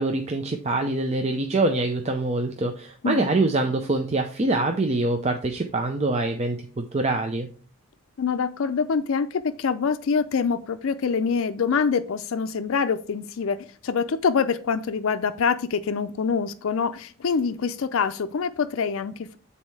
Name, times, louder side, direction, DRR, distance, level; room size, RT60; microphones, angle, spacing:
voice 1, 0.0-7.5, right 2 dB, 30° right, 0.5 m, -25 dB
voice 2, 8.2-19.4, left 5 dB, 65° left, 0.4 m, -25 dB
7.4 x 4.2 x 4.6 m
head